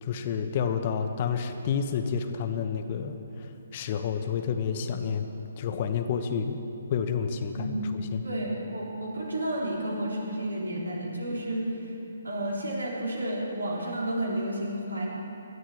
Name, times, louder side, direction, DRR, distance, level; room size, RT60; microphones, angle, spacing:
voice 1, 0.0-5.3 5.6-6.6 6.9-7.8 8.1-8.3, left 7 dB, 40° left, 7 dB, 1.1 m, -29 dB
voice 2, 7.6-8.0 8.2-11.8 12.2-15.1, right 1 dB, 85° right, -3 dB, 4.2 m, -31 dB
19.5 x 12.5 x 4.7 m, 2.9 s
figure-of-eight pair, 135°, 0 cm